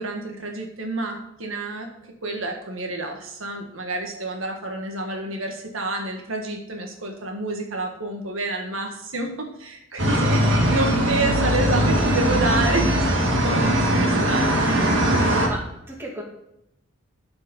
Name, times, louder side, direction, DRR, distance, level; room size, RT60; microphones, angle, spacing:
voice 1, 0.0-1.9 2.2-15.1, right 2 dB, 75° right, 2 dB, 1.7 m, -29 dB
sound 1, 10.0-15.5, equal, 60° right, 1.9 m, -20 dB
voice 2, 15.1-16.2, right 1 dB, 10° right, -2 dB, 2.3 m, -36 dB
12.5 x 5.3 x 5.5 m, 0.82 s
head